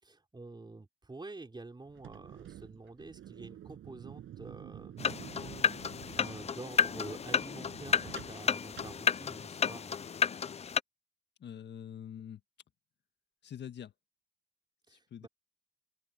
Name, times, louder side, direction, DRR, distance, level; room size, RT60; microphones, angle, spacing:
voice 1, 0.0-5.0 6.1-9.9 14.9-15.3, right 3 dB, 20° right, 5.2 m, -48 dB
sound 1, 1.8-9.7, right 11 dB, 75° right, 6.8 m, -50 dB
sound 2, 5.0-10.8, left 7 dB, 30° left, 0.5 m, -32 dB
voice 2, 11.4-12.4 13.4-13.9 14.9-15.3, left 9 dB, 60° left, 1.6 m, -45 dB
open air
supercardioid pair, 70°, 20 cm